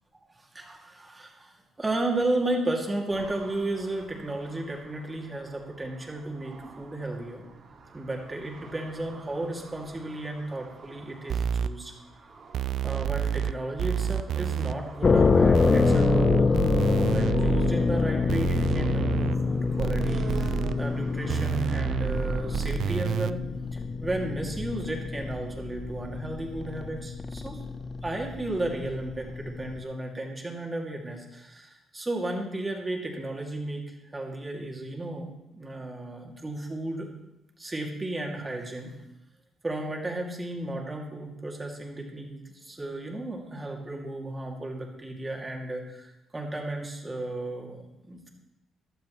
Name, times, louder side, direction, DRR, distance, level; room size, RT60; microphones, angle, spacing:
voice 1, 0.4-7.4 7.9-11.9 12.2-12.4 12.8-23.4 23.7-27.6 28.0-37.1 37.6-38.9 39.6-48.3, right 1 dB, 20° right, 0 dB, 2.4 m, -34 dB
sound 1, 3.1-22.7, right 4 dB, 50° right, 2.3 m, -48 dB
sound 2, 11.3-11.7 12.5-13.5 13.8-14.7 15.5-17.7 18.3-19.4 19.8-20.7 21.3-23.3, right 9 dB, 70° right, 0.3 m, -29 dB
sound 3, 15.0-29.8, left 4 dB, 35° left, 0.6 m, -26 dB
15.0 x 12.0 x 3.1 m, 0.94 s
cardioid pair, 90°, 0 cm